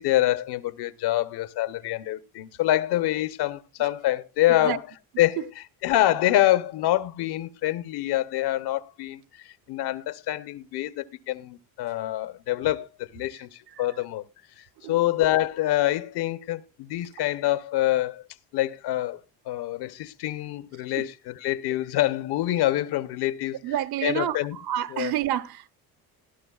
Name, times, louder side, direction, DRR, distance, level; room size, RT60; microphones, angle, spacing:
voice 1, 0.0-4.9 5.2-14.2 14.6-18.2 18.5-19.2 19.5-23.7 24.0-24.6 24.9-25.1, left 14 dB, 75° left, 0.8 m, -26 dB
voice 2, 23.6-25.7, right 12 dB, 70° right, 0.8 m, -28 dB
18.0 x 11.5 x 2.3 m
cardioid pair, 125°, 39 cm